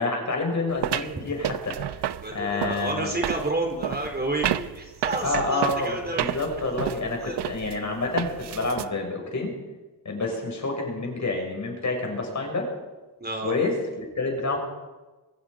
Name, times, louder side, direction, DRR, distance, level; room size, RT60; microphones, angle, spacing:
voice 1, 0.0-1.9 2.3-3.1 5.2-9.5 10.1-12.7 13.4-14.6, left 3 dB, 45° left, 1 dB, 6.9 m, -28 dB
sound 1, 0.8-8.9, right 11 dB, 85° right, 0.9 m, -30 dB
voice 2, 2.2-6.4 7.2-7.4 13.2-13.5, right 2 dB, 25° right, 3 dB, 4.0 m, -30 dB
23.0 x 22.5 x 5.3 m, 1.2 s
wide cardioid pair, 115°, 40 cm